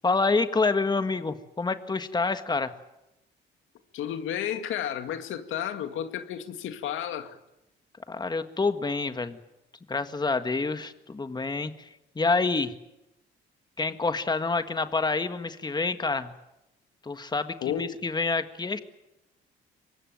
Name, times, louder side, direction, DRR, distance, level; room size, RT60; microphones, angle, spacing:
voice 1, 0.0-2.7 8.1-9.4 9.9-11.9 12.1-12.7 13.8-16.3 17.0-18.8, left 3 dB, 20° left, 9 dB, 1.7 m, -27 dB
voice 2, 3.9-7.4 17.6-17.9, left 10 dB, 80° left, 8 dB, 2.2 m, -32 dB
23.5 x 21.0 x 9.2 m, 0.88 s
cardioid pair, 90°, 20 cm